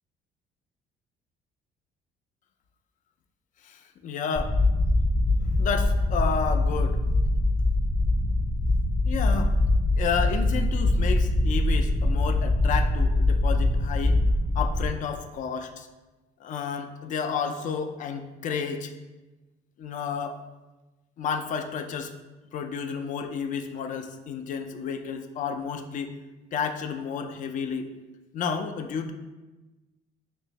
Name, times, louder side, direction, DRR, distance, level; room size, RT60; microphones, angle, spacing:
voice 1, 3.6-4.6 5.4-7.0 9.1-9.5 10.0-14.2 14.6-15.9 16.4-18.9 19.8-20.4 21.2-22.1 22.5-26.1 26.5-27.9 28.3-29.1, left 6 dB, 50° left, 7 dB, 0.4 m, -31 dB
sound 1, 4.4-14.9, left 2 dB, 10° left, 0.8 m, -23 dB
3.4 x 3.0 x 2.9 m, 1.1 s
cardioid pair, 110°, 17 cm